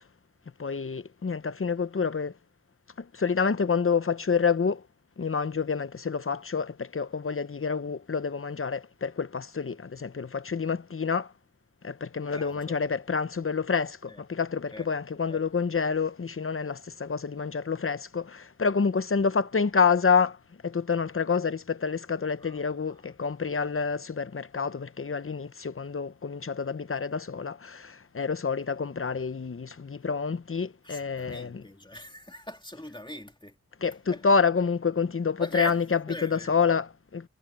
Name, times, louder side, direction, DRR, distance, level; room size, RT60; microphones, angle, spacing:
voice 1, 0.6-2.3 3.0-4.8 5.2-11.3 11.8-20.4 20.6-31.6 33.8-37.3, left 5 dB, 45° left, 0.8 m, -28 dB
voice 2, 12.3-12.8 14.1-14.2 14.7-14.9 15.3-15.4 22.4-22.6 22.9-23.0 30.8-33.6 33.8-34.2 35.4-35.8 36.1-36.6, equal, 15° left, 2.7 m, -40 dB
wide cardioid pair, 65°, 29 cm